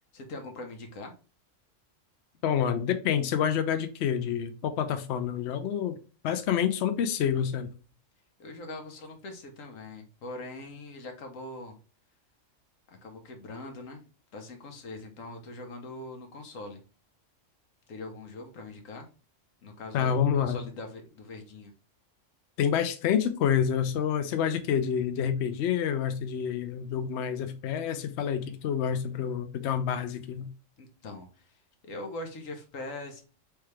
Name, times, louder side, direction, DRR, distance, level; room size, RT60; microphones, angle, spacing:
voice 1, 0.1-1.1 8.4-11.8 13.0-14.0 14.3-16.8 17.9-19.1 19.6-21.7 30.8-33.2, left 2 dB, 85° left, 1.3 m, -42 dB
voice 2, 2.4-6.0 6.2-7.8 19.9-20.6 22.6-30.5, left 8 dB, 65° left, 0.8 m, -28 dB
3.4 x 3.3 x 3.2 m
omnidirectional pair, 1.3 m